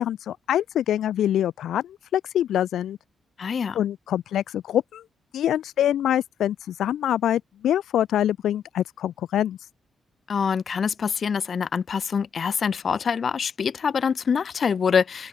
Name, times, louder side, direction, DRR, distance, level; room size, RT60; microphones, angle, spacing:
voice 1, 0.0-3.0 3.7-5.0 5.3-9.6, left 11 dB, 85° left, 2.5 m, -25 dB
voice 2, 3.4-3.8 10.3-15.3, left 6 dB, 40° left, 2.3 m, -25 dB
open air
wide cardioid pair, 160°, 0 cm